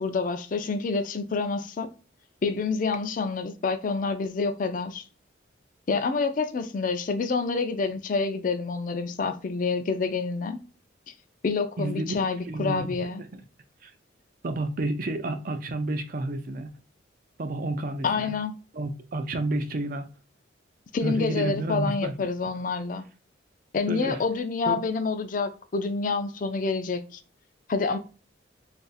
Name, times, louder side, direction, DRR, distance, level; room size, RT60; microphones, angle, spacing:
voice 1, 0.0-1.9 2.4-5.0 5.9-10.6 11.1-11.2 11.4-13.2 18.0-18.5 20.9-23.0 23.7-27.2 27.7-28.0, left 4 dB, 45° left, 0.4 m, -28 dB
voice 2, 11.8-13.0 13.3-13.4 13.8-13.9 14.4-16.7 17.4-18.3 18.7-20.1 21.0-22.1 23.9-24.2 24.7-24.8, right 2 dB, 45° right, 0.4 m, -30 dB
2.5 x 2.4 x 3.9 m
head